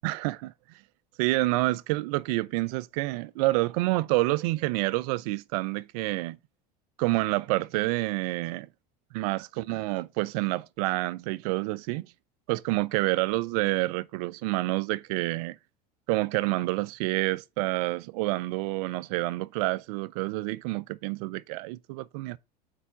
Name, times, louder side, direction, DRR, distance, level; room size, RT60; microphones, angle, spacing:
voice 1, 0.0-0.5 1.2-6.4 7.0-8.7 9.1-12.1 12.5-15.6 16.1-22.4, right 20 dB, 65° right, 0.4 m, -28 dB
4.6 x 4.4 x 5.5 m
hypercardioid pair, 90°, 21 cm